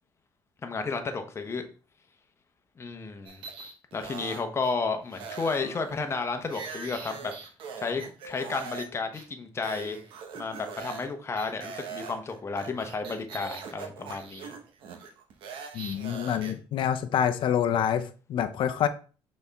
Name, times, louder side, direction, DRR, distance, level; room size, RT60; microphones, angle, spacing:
voice 1, 0.6-1.7 2.8-3.4 3.9-7.3 7.8-10.0 10.4-14.5, left 4 dB, 30° left, 6 dB, 1.0 m, -32 dB
sound 1, 3.3-4.7 5.1-8.9 9.1-9.3 9.6-11.1 11.4-16.5, right 5 dB, 70° right, 1.2 m, -42 dB
voice 2, 15.7-18.9, left 9 dB, 65° left, 9 dB, 0.7 m, -27 dB
6.3 x 4.3 x 3.5 m, 0.36 s
cardioid pair, 110°, 9 cm